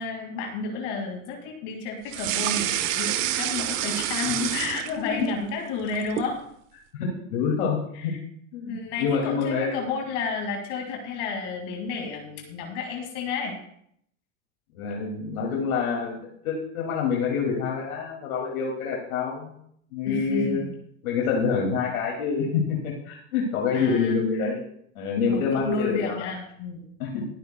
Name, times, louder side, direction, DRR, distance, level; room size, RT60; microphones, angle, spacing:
voice 1, 0.0-6.4 7.9-8.2 8.7-13.6 20.0-20.7 23.7-24.2 25.3-26.9, left 4 dB, 60° left, 2 dB, 2.3 m, -31 dB
sound 1, 2.1-5.3 5.7-6.4, right 12 dB, 65° right, 1.1 m, -28 dB
voice 2, 4.9-5.3 6.9-8.1 8.5-9.8 14.7-19.5 19.9-20.6 21.0-24.6 25.0-26.2 27.0-27.3, left 5 dB, 85° left, -1 dB, 2.5 m, -27 dB
20.5 x 8.4 x 2.3 m, 0.70 s
supercardioid pair, 130°, 41 cm